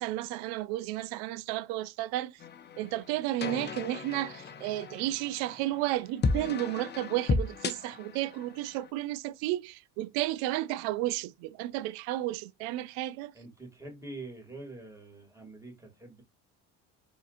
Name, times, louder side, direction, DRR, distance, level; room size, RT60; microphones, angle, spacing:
voice 1, 0.0-2.3 2.8-13.3, right 16 dB, 80° right, 0.5 m, -32 dB
sound 1, 2.4-8.9, left 4 dB, 30° left, 0.7 m, -35 dB
voice 2, 13.3-16.2, right 2 dB, 10° right, 2.5 m, -45 dB
4.1 x 4.0 x 2.5 m
supercardioid pair, 100°, 37 cm